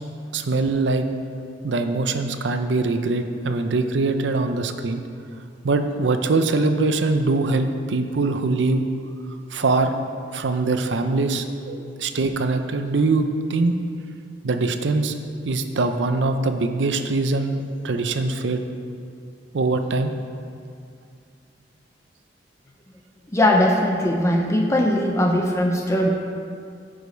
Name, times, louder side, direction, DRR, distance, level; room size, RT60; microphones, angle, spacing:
voice 1, 0.3-1.1 1.6-5.0 5.6-8.8 9.5-9.9 10.3-13.8 14.4-15.1 15.5-18.6 19.5-20.1, right 3 dB, 80° right, 7 dB, 0.6 m, -22 dB
voice 2, 23.3-26.1, left 1 dB, 15° left, 0 dB, 0.6 m, -20 dB
11.0 x 5.1 x 5.2 m, 2.3 s
head